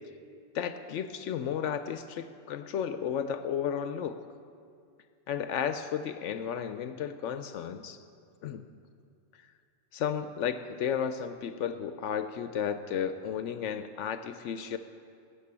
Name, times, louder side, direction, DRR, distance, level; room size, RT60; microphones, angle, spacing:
voice 1, 0.5-4.2 5.3-8.0 8.4-8.6 9.9-14.8, left 8 dB, 75° left, 10 dB, 0.9 m, -33 dB
12.5 x 7.6 x 8.6 m, 2.4 s
omnidirectional pair, 1.3 m